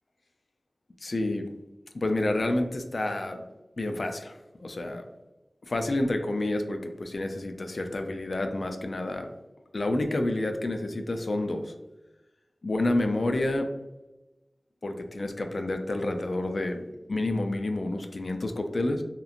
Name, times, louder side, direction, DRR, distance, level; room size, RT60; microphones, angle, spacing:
voice 1, 1.0-1.5 1.9-3.4 3.8-5.0 5.7-9.3 9.7-11.7 12.6-13.7 14.8-19.0, left 2 dB, 70° left, 5 dB, 0.3 m, -29 dB
2.9 x 2.5 x 2.4 m, 1.0 s
wide cardioid pair, 70°, 0 cm